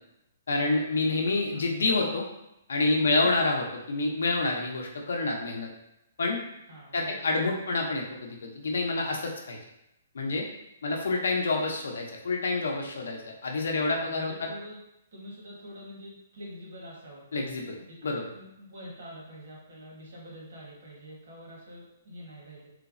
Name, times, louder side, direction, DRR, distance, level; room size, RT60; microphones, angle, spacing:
voice 1, 0.5-2.3 2.7-5.7 6.2-6.4 6.9-9.6 10.1-10.5 10.8-14.5 17.3-17.8 18.0-18.3, left 3 dB, 85° left, 1 dB, 0.5 m, -28 dB
voice 2, 6.7-7.3 13.6-14.8 15.1-22.7, equal, 60° right, -4 dB, 1.0 m, -46 dB
3.1 x 2.0 x 2.4 m, 0.87 s
hypercardioid pair, 165°, 0 cm